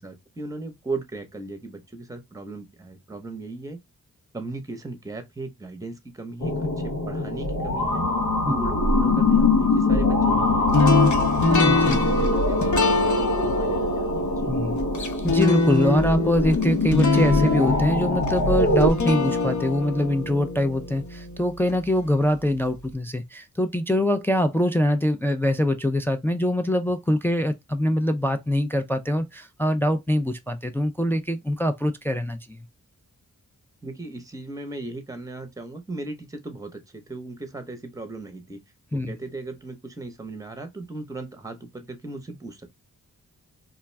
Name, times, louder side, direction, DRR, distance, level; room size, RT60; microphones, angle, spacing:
voice 1, 0.0-3.8 4.3-8.1 8.4-11.1 11.4-14.5 33.8-38.6 38.9-42.7, right 2 dB, 10° right, 0.8 m, -37 dB
sound 1, 6.4-18.9, left 2 dB, 85° left, 0.9 m, -23 dB
sound 2, 10.7-21.8, left 3 dB, 55° left, 0.8 m, -24 dB
voice 2, 11.5-12.0 14.5-32.6 38.9-39.1, left 1 dB, 5° left, 0.3 m, -24 dB
2.4 x 2.3 x 3.1 m
cardioid pair, 45°, 35 cm